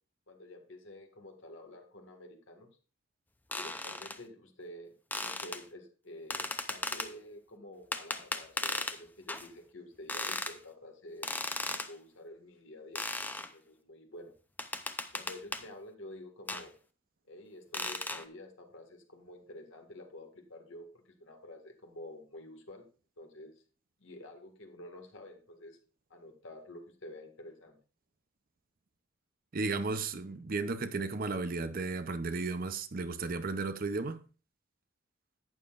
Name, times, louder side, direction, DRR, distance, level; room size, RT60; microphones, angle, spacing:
voice 1, 0.3-2.7 3.5-11.3 11.7-14.3 15.1-16.7 17.3-22.9 23.2-23.5 24.0-25.8 26.1-27.8, left 1 dB, 75° left, 1.9 m, -49 dB
sound 1, 3.5-4.2 5.1-5.6 6.3-7.1 7.9-9.0 9.3-9.5 10.1-10.6 11.2-11.9 13.0-13.5 14.6-15.7 16.5-16.7 17.7-18.2, left 2 dB, 10° left, 0.6 m, -36 dB
voice 2, 29.5-34.2, right 3 dB, 45° right, 0.6 m, -34 dB
11.5 x 8.9 x 2.5 m
head